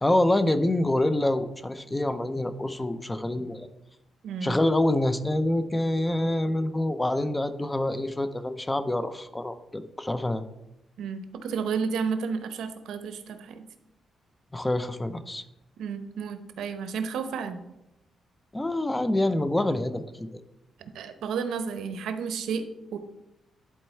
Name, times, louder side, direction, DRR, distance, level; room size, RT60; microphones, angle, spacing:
voice 1, 0.0-3.7 4.4-10.4 14.5-15.4 18.5-20.3, left 1 dB, 10° left, 11 dB, 0.5 m, -26 dB
voice 2, 4.2-4.6 11.0-13.7 15.8-17.6 20.8-23.0, right 6 dB, 90° right, 9 dB, 0.8 m, -32 dB
11.0 x 4.4 x 4.4 m, 0.88 s
cardioid pair, 125°, 0 cm